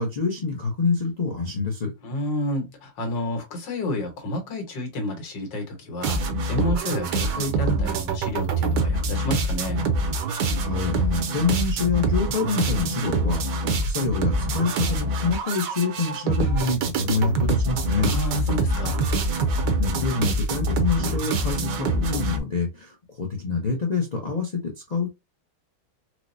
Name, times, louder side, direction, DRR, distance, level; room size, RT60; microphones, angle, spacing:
voice 1, 0.0-1.9 10.6-18.2 19.6-25.1, left 4 dB, 60° left, 0.4 m, -26 dB
voice 2, 2.0-9.9 18.1-19.0, left 1 dB, 85° left, 1.8 m, -30 dB
sound 1, 6.0-22.4, right 2 dB, 75° right, 1.3 m, -25 dB
4.5 x 2.0 x 2.6 m
omnidirectional pair, 1.9 m